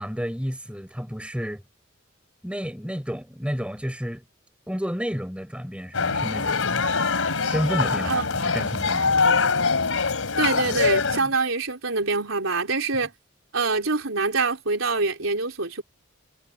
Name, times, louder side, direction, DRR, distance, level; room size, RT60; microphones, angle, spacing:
voice 1, 0.0-1.6 2.4-4.2 4.7-6.9 7.4-9.2 11.2-11.3, equal, 5° right, 6.4 m, -31 dB
sound 1, 5.9-11.2, left 4 dB, 90° left, 3.0 m, -23 dB
voice 2, 10.4-13.1 13.5-15.8, right 3 dB, 80° right, 3.9 m, -25 dB
head